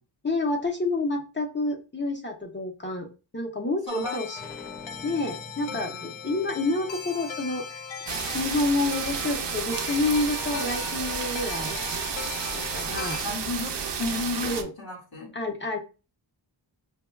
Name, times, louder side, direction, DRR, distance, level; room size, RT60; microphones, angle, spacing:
voice 1, 0.2-3.1 3.3-4.4 5.0-7.8 8.3-11.8 12.5-13.2 14.4-14.7 15.3-15.8, left 2 dB, 25° left, 2 dB, 0.7 m, -28 dB
sound 1, 3.9-13.2, left 8 dB, 90° left, 0.6 m, -39 dB
voice 2, 3.9-4.2 5.6-6.1 13.2-13.7 14.0-15.3, left 3 dB, 55° left, -3 dB, 1.8 m, -33 dB
sound 2, 4.3-9.6, equal, 5° left, 1.5 m, -48 dB
sound 3, 8.1-14.6, right 6 dB, 70° right, 0.7 m, -31 dB
5.6 x 2.2 x 2.2 m, 0.31 s
wide cardioid pair, 90°, 44 cm